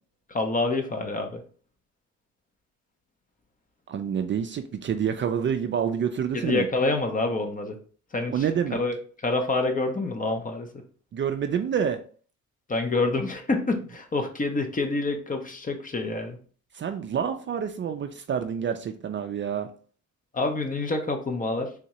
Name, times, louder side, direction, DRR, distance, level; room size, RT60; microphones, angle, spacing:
voice 1, 0.3-1.4 6.3-7.8 8.1-8.5 8.7-8.9 9.2-10.8 12.7-16.4 20.3-21.7, left 3 dB, 25° left, 0.7 m, -27 dB
voice 2, 3.9-6.7 8.3-8.8 11.1-12.0 16.7-19.7, right 8 dB, 40° right, 0.4 m, -27 dB
3.5 x 2.7 x 3.0 m
cardioid pair, 90°, 30 cm